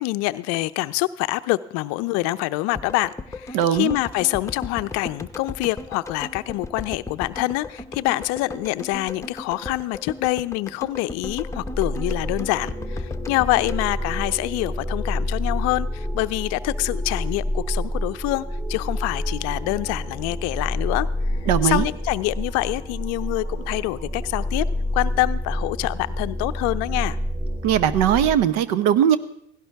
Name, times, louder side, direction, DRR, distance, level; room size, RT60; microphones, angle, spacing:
voice 1, 0.0-21.1 21.6-24.6 24.9-27.2, left 19 dB, 50° left, 13 dB, 0.6 m, -26 dB
sound 1, 2.8-14.9 15.2-15.3, left 3 dB, 10° left, 1.0 m, -37 dB
voice 2, 3.5-4.0 21.5-21.9 27.6-29.2, right 10 dB, 55° right, 15 dB, 1.0 m, -19 dB
sound 2, 11.2-28.4, left 1 dB, 15° right, 2.9 m, -28 dB
16.5 x 16.5 x 3.5 m, 0.75 s
hypercardioid pair, 70°, 33 cm